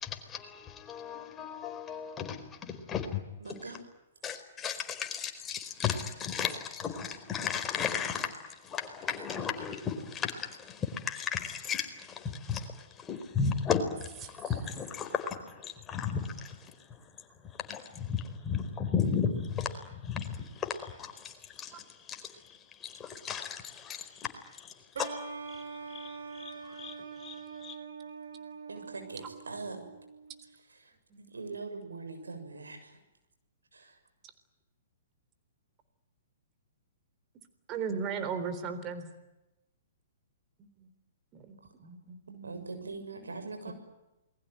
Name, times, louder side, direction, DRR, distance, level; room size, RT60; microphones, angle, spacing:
voice 1, 0.0-3.2 4.2-8.3 8.6-16.6 17.7-22.2 22.8-24.3 24.6-25.2 25.5-25.6 25.9-27.8, left 6 dB, 20° left, 6 dB, 4.5 m, -35 dB
voice 2, 3.4-3.8 28.7-29.9 30.4-33.0 33.7-34.0 42.4-43.7, right 3 dB, 85° right, 6 dB, 6.8 m, -42 dB
sound 1, 24.9-30.4, right 5 dB, 70° right, 4.1 m, -44 dB
voice 3, 37.7-39.0 41.8-42.6 42.9-43.0 43.7-43.8, right 6 dB, 30° right, 10 dB, 3.7 m, -36 dB
28.0 x 21.5 x 9.4 m, 1.0 s
hypercardioid pair, 120°, 0 cm